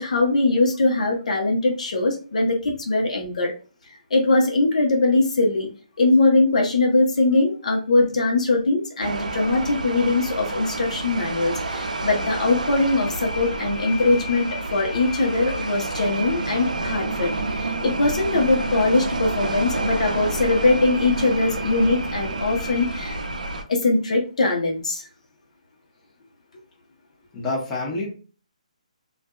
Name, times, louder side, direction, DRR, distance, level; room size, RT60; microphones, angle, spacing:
voice 1, 0.0-3.5 4.1-5.7 6.0-23.2 23.7-25.1, left 2 dB, 65° left, 1 dB, 0.9 m, -21 dB
sound 1, 9.0-23.6, right 2 dB, 85° right, 0.5 m, -29 dB
voice 2, 27.3-28.1, left 2 dB, 15° left, -5 dB, 0.9 m, -27 dB
2.5 x 2.3 x 2.3 m, 0.36 s
hypercardioid pair, 150°, 4 cm